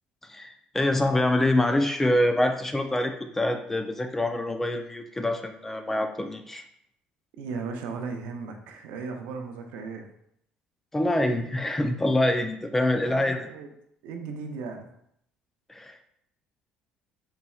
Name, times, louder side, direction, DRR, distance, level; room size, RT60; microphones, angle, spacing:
voice 1, 0.2-6.6 10.9-13.5 15.7-16.0, left 1 dB, 10° left, 6 dB, 0.4 m, -25 dB
voice 2, 7.4-10.1 13.0-13.7 14.0-14.9, right 4 dB, 90° right, 4 dB, 0.6 m, -36 dB
4.2 x 4.0 x 2.3 m, 0.73 s
cardioid pair, 120°, 3 cm